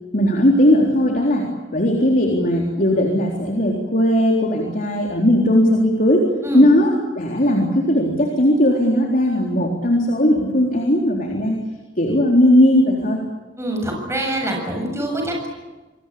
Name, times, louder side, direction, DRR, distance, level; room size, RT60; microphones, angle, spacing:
voice 1, 0.1-11.6 12.0-13.2, left 1 dB, 45° left, 1 dB, 3.9 m, -17 dB
voice 2, 13.6-15.5, right 1 dB, 15° right, 0 dB, 7.5 m, -25 dB
28.0 x 21.5 x 8.7 m, 1.2 s
head